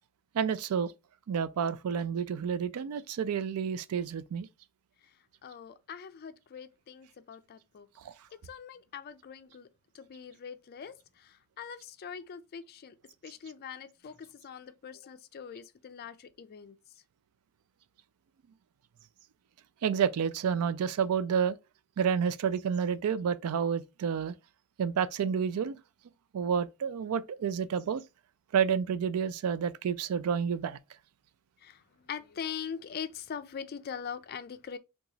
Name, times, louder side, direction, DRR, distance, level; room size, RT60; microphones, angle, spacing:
voice 1, 0.3-0.9 1.3-4.5 8.0-8.1 19.8-21.6 22.0-24.3 24.8-25.8 26.3-28.0 28.5-30.8, right 7 dB, 70° right, 0.3 m, -29 dB
voice 2, 5.4-7.9 8.4-9.7 9.9-12.9 13.2-16.8 31.6-34.8, left 7 dB, 45° left, 0.3 m, -42 dB
2.9 x 2.3 x 3.9 m
head